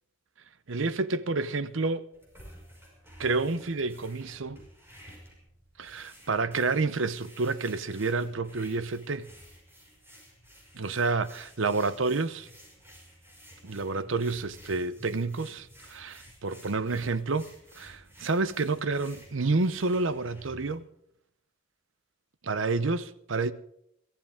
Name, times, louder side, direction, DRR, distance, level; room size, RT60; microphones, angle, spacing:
voice 1, 0.7-2.1 3.2-4.6 5.8-9.3 10.8-12.5 13.6-17.5 17.8-20.8 22.4-23.5, right 3 dB, 75° right, 0.8 m, -29 dB
sound 1, 2.1-20.8, equal, 10° right, 5.6 m, -53 dB
22.0 x 15.0 x 3.6 m
head